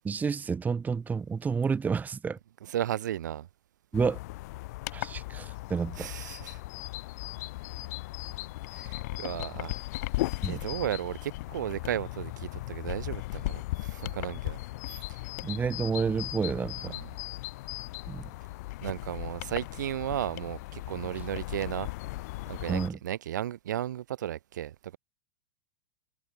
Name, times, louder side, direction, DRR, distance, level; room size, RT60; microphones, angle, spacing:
voice 1, 0.0-2.4 3.9-4.2 4.9-6.1 10.4-10.6 15.4-16.9 18.1-18.2 22.7-23.0, right 5 dB, 15° right, 1.0 m, -30 dB
voice 2, 2.6-3.5 6.0-6.6 8.7-9.8 10.5-14.6 14.9-15.1 16.8-17.1 18.8-21.9 22.5-25.0, right 11 dB, 70° right, 2.6 m, -34 dB
sound 1, 3.9-22.9, left 20 dB, 60° left, 2.3 m, -37 dB
hypercardioid pair, 95°, 10 cm